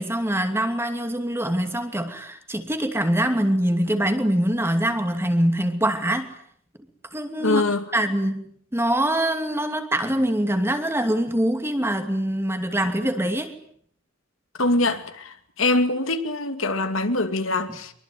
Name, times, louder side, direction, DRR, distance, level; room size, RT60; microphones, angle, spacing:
voice 1, 0.0-6.3 7.1-7.6 7.9-13.5, right 1 dB, 10° right, 2.6 m, -24 dB
voice 2, 7.4-7.9 14.6-17.9, left 2 dB, 65° left, 2.5 m, -23 dB
24.5 x 23.5 x 9.6 m
head